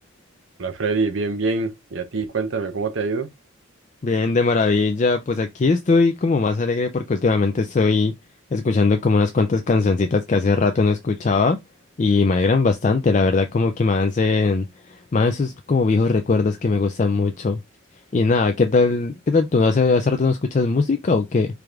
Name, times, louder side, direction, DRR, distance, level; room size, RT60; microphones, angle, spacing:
voice 1, 0.6-3.3, right 4 dB, 65° right, 0.6 m, -25 dB
voice 2, 4.0-8.1 8.5-11.6 12.0-17.6 18.1-21.5, left 3 dB, 35° left, 0.4 m, -20 dB
4.7 x 2.5 x 3.3 m
head